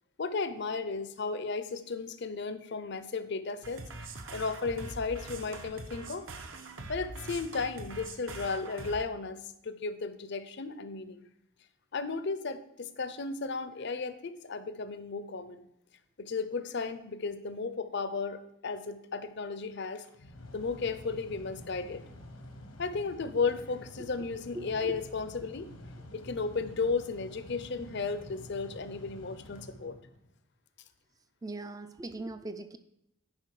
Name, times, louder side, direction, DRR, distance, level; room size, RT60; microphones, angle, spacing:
voice 1, 0.2-3.9 4.3-6.3 6.9-11.3 11.9-15.7 16.2-20.0 20.5-22.0 22.8-25.7 26.1-30.0, left 4 dB, 55° left, 12 dB, 0.6 m, -34 dB
sound 1, 3.6-9.0, right 2 dB, 60° right, 0.9 m, -43 dB
Mechanical fan, 19.8-30.4, left 1 dB, 85° left, 1.2 m, -49 dB
voice 2, 24.5-25.0 31.4-32.8, right 2 dB, 15° right, 11 dB, 0.4 m, -40 dB
10.5 x 5.2 x 4.8 m, 0.80 s
head